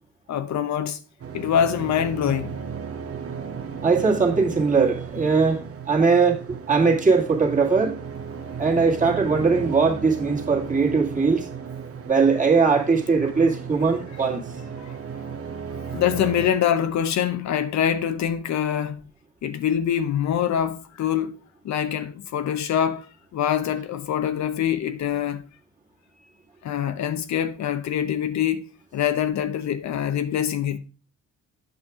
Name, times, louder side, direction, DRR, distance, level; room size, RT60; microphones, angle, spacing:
voice 1, 0.3-1.0 1.3-2.6 14.8-14.9 15.9-19.0 19.4-21.4 21.6-23.1 23.3-25.5 26.6-30.8, left 9 dB, 65° left, 0.8 m, -24 dB
sound 1, 1.2-16.5, right 6 dB, 50° right, 1.1 m, -35 dB
voice 2, 3.8-6.4 6.7-8.0 8.6-11.5 12.1-14.4, right 4 dB, 25° right, 2.1 m, -20 dB
8.2 x 6.6 x 3.5 m
cardioid pair, 90°, 30 cm